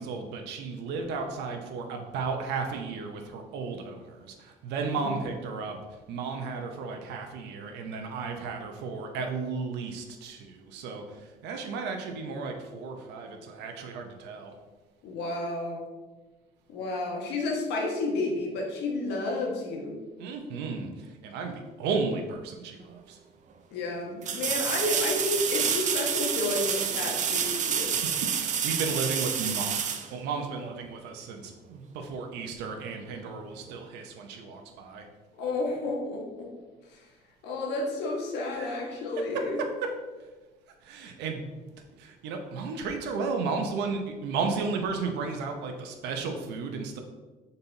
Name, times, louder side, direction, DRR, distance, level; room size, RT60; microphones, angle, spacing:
voice 1, 0.0-5.8 6.1-11.0 11.4-14.5 20.2-20.9 21.2-23.2 28.2-35.0 38.5-38.8 39.3-39.9 40.8-41.4 42.0-47.0, right 4 dB, 90° right, 4 dB, 0.9 m, -34 dB
voice 2, 15.0-15.9 16.7-20.0 23.7-28.0 35.3-36.5 36.9-37.1 37.4-39.6, left 2 dB, 90° left, 0 dB, 1.4 m, -31 dB
sound 1, 22.8-22.9 24.2-30.8 33.7-33.8, right 7 dB, 45° right, 0.6 m, -28 dB
5.5 x 4.2 x 4.0 m, 1.2 s
cardioid pair, 110°, 17 cm